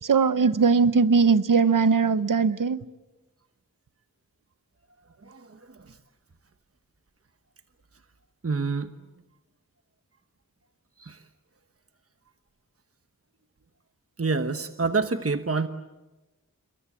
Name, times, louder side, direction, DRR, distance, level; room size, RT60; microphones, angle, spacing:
voice 1, 0.0-2.8, right 5 dB, 70° right, 0.9 m, -20 dB
voice 2, 5.2-6.0 8.4-9.0 11.0-11.2 14.2-15.7, right 4 dB, 45° right, 1.2 m, -28 dB
27.5 x 23.0 x 8.5 m
wide cardioid pair, 45°, 34 cm